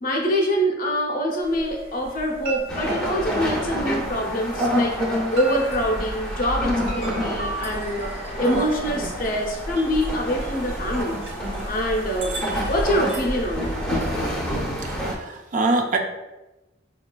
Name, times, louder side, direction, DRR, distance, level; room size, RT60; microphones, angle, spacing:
voice 1, 0.0-5.0 5.3-11.2 11.6-13.7, equal, 45° left, 0 dB, 0.6 m, -25 dB
sound 1, 1.4-14.3, right 1 dB, 70° right, 0.9 m, -34 dB
sound 2, 2.7-15.1, equal, 5° left, 0.6 m, -29 dB
voice 2, 14.8-16.0, right 2 dB, 40° right, 3 dB, 0.3 m, -24 dB
4.7 x 2.3 x 2.2 m, 1.0 s
head